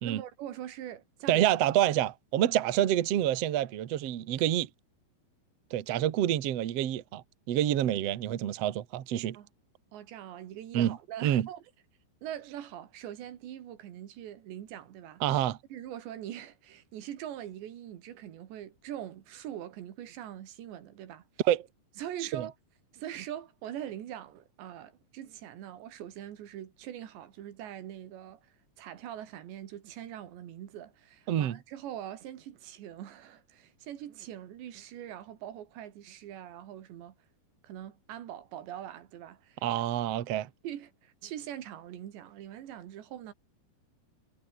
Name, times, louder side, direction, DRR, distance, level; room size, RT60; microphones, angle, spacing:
voice 1, 0.0-1.5 9.3-9.5 9.9-11.6 12.2-15.2 15.7-21.3 22.0-22.5 22.9-37.2 37.6-39.7 40.6-43.3, right 11 dB, 85° right, 4.3 m, -43 dB
voice 2, 1.3-4.7 5.7-9.4 10.7-11.0 11.2-11.5 15.2-15.6 21.4-21.6 22.3-22.4 31.3-31.6 39.6-40.5, right 12 dB, 60° right, 1.7 m, -27 dB
omnidirectional pair, 4.9 m